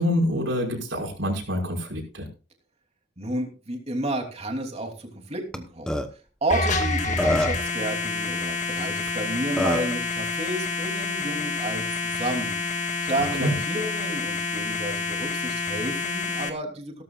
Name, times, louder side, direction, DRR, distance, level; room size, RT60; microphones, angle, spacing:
voice 1, 0.0-2.3 13.4-13.5, equal, 75° right, 0 dB, 5.6 m, -26 dB
voice 2, 3.2-6.0 6.4-12.7 13.0-17.0, right 1 dB, 35° right, 3 dB, 3.1 m, -31 dB
Burping eructation, 5.5-5.6 5.9-6.1 6.8-6.9 7.2-7.7 9.1-9.2 9.6-9.9, left 1 dB, 5° left, 1.1 m, -25 dB
sound 1, 6.5-16.5, left 3 dB, 40° left, 1.7 m, -28 dB
17.0 x 13.5 x 2.4 m, 0.33 s
head